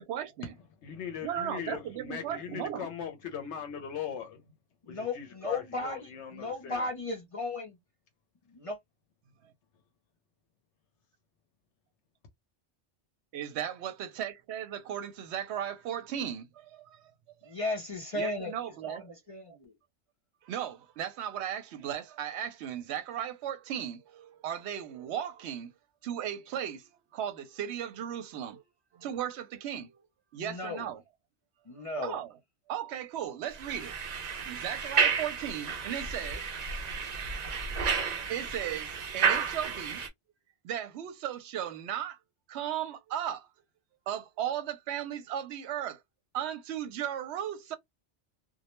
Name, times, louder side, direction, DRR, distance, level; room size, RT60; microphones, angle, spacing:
voice 1, 0.0-0.5 1.2-2.9 13.3-16.8 17.4-17.5 18.1-19.2 20.5-25.7 26.0-28.6 28.9-30.0 30.3-31.0 32.0-32.3 32.7-33.9 34.5-36.4 38.3-40.0 40.6-42.2 42.5-43.5 44.1-46.0 46.3-47.7, right 10 dB, 75° right, 0.8 m, -36 dB
voice 2, 0.8-4.4 4.9-6.9, left 8 dB, 75° left, 0.9 m, -39 dB
voice 3, 4.8-7.8 8.5-8.8 17.4-18.5 18.8-19.7 30.4-30.9 31.7-32.2, left 2 dB, 40° left, 0.5 m, -35 dB
sound 1, 33.5-40.1, right 6 dB, 55° right, 0.5 m, -31 dB
2.2 x 2.1 x 2.8 m
omnidirectional pair, 1.2 m